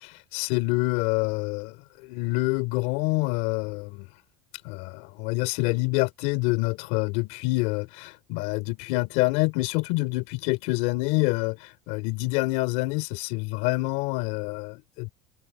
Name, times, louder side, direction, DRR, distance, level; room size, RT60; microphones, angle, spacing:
voice 1, 0.0-4.1 4.6-15.1, left 23 dB, 70° left, 3.3 m, -27 dB
supercardioid pair, 115°, 13 cm